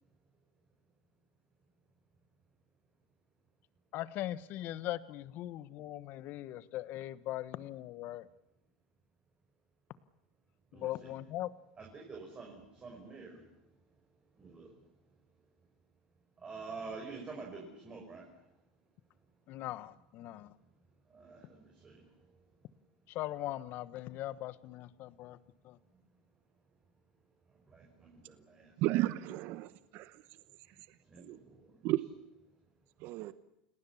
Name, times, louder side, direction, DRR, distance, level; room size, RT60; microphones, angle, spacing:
voice 1, 3.9-8.3 10.8-11.5 19.5-20.5 23.1-25.4 25.7-25.8, left 14 dB, 50° left, 16 dB, 1.2 m, -40 dB
voice 2, 10.7-11.1 11.8-13.4 14.4-14.7 16.4-18.3 21.1-22.1 27.7-28.7 31.1-31.8, right 4 dB, 25° right, 0 dB, 5.5 m, -48 dB
voice 3, 28.8-30.2 31.2-31.4 31.8-32.0 33.0-33.3, right 16 dB, 55° right, 14 dB, 1.0 m, -33 dB
29.5 x 19.0 x 7.2 m, 0.87 s
supercardioid pair, 115°, 4 cm